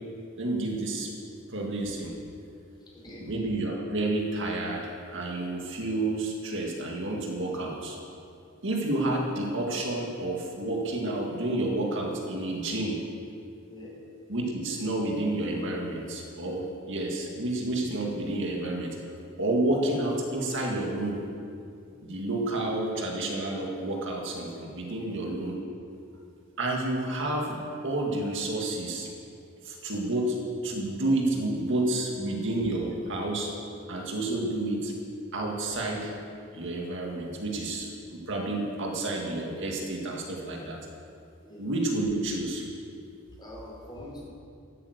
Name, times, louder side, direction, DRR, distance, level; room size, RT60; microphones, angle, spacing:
voice 1, 0.4-1.1 1.5-2.1 3.2-8.0 8.6-13.0 14.3-19.0 19.4-21.2 22.0-25.6 26.6-29.1 29.6-30.4 30.6-33.5 33.9-34.9 35.3-36.1 36.5-40.8 41.6-42.6, right 2 dB, 65° right, -1 dB, 2.0 m, -30 dB
voice 2, 2.8-3.3 13.7-14.0 24.9-25.2 41.4-41.7 43.4-44.3, left 1 dB, 20° left, -4 dB, 4.1 m, -44 dB
13.0 x 8.9 x 8.1 m, 2.5 s
head